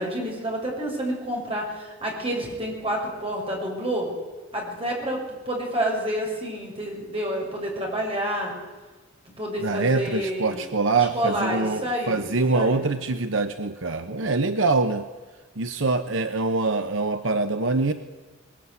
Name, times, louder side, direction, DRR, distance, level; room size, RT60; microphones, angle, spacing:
voice 1, 0.0-4.1 4.5-5.2 5.5-8.5 9.3-10.6 10.9-12.9, right 1 dB, 30° right, -1 dB, 6.8 m, -29 dB
voice 2, 9.6-15.1 15.6-17.9, right 3 dB, 70° right, 8 dB, 1.0 m, -24 dB
21.5 x 20.5 x 9.6 m, 1.3 s
head